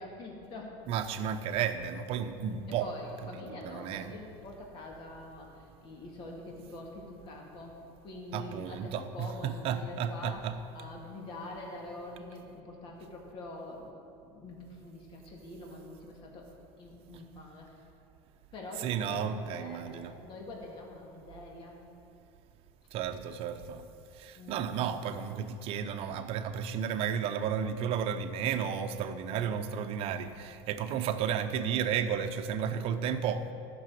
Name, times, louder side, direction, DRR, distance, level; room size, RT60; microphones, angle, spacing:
voice 1, 0.0-0.7 2.8-7.8 8.0-10.4 10.7-14.0 14.2-16.5 16.8-17.7 18.5-21.8 24.3-24.8 29.8-29.9 30.2-30.4, left 2 dB, 40° left, -1 dB, 2.1 m, -45 dB
voice 2, 0.9-2.9 3.5-4.1 8.3-10.6 18.8-20.1 22.9-23.9 24.1-33.5, right 8 dB, 50° right, 8 dB, 0.8 m, -33 dB
13.0 x 6.2 x 7.6 m, 2.6 s
supercardioid pair, 140°, 13 cm